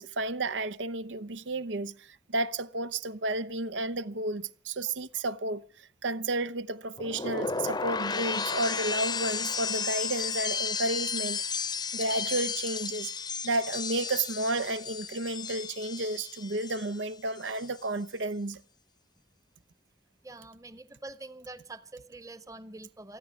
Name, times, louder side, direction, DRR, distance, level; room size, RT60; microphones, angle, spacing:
voice 1, 0.0-11.4 11.9-13.1 13.4-18.6, right 2 dB, 85° right, 0.8 m, -32 dB
sound 1, 7.0-17.1 17.4-17.8, left 5 dB, 25° left, 0.7 m, -33 dB
voice 2, 20.2-23.2, right 2 dB, 20° right, 0.9 m, -45 dB
28.5 x 9.8 x 5.2 m
head